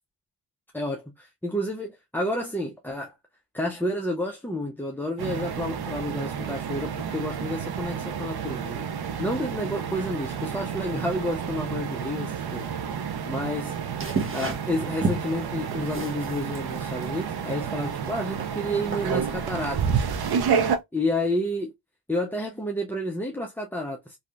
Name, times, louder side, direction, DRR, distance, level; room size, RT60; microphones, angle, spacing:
voice 1, 0.7-3.1 3.5-8.9 9.2-13.8 14.3-20.1 20.9-21.7 22.1-24.2, left 1 dB, 5° left, 0.5 m, -30 dB
sound 1, 5.2-20.8, right 7 dB, 55° right, 0.6 m, -30 dB
sound 2, 14.0-20.8, right 3 dB, 25° right, 1.0 m, -34 dB
3.1 x 2.7 x 2.4 m
cardioid pair, 80°, 47 cm